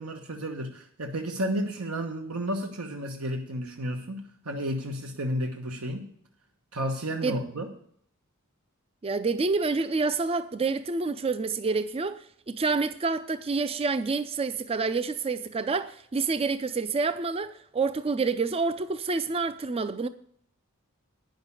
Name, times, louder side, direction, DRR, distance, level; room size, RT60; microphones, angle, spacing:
voice 1, 0.0-6.1 6.7-7.7, equal, 85° right, 1.2 m, -32 dB
voice 2, 9.0-20.1, right 4 dB, 25° right, 0.4 m, -28 dB
9.6 x 6.6 x 8.3 m
head